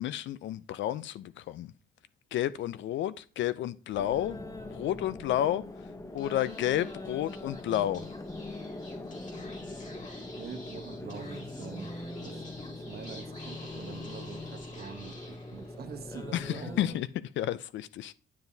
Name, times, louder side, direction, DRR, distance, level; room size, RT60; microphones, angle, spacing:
voice 1, 0.0-1.7 2.3-4.4 4.7-5.6 6.1-8.1 16.3-17.1 17.4-18.1, left 12 dB, 70° left, 0.5 m, -31 dB
sound 1, 3.9-16.9, left 2 dB, 15° left, 0.9 m, -42 dB
Speech / Whispering, 6.2-15.9, left 2 dB, 40° left, 2.2 m, -51 dB
voice 2, 9.9-11.9 12.2-12.4 12.7-17.0, right 7 dB, 50° right, 1.0 m, -45 dB
9.7 x 7.1 x 2.7 m
cardioid pair, 90°, 20 cm